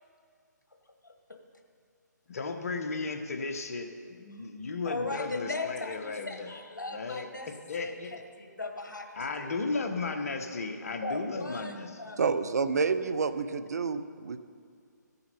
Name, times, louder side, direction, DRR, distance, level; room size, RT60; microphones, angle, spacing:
voice 1, 1.0-1.4 4.4-4.5 4.8-7.5 7.8-9.1 9.4-9.5 11.0-12.2, left 2 dB, 80° left, 5 dB, 1.4 m, -38 dB
voice 2, 2.3-3.9 4.2-6.6 6.9-8.1 9.1-12.0, left 3 dB, 50° left, 6 dB, 1.1 m, -35 dB
voice 3, 12.2-14.4, right 5 dB, 60° right, 12 dB, 0.6 m, -29 dB
14.5 x 6.9 x 5.4 m, 2.3 s
figure-of-eight pair, 140°, 10 cm